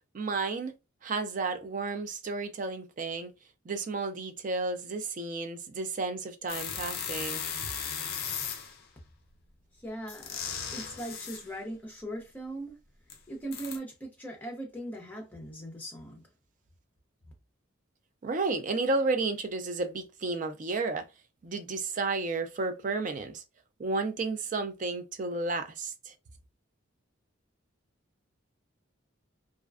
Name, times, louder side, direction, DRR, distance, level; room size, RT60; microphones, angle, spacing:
voice 1, 0.1-0.7 1.0-3.3 3.7-7.4 18.2-21.1 21.4-23.4 23.8-26.1, right 3 dB, 40° right, 0.3 m, -32 dB
sound 1, 6.5-8.8 10.1-11.5 13.1-13.2 13.5-13.8, left 7 dB, 45° left, 0.4 m, -36 dB
voice 2, 9.8-10.4 10.7-12.8 13.3-16.3, right 1 dB, 10° left, 0.7 m, -39 dB
2.4 x 2.1 x 2.3 m
head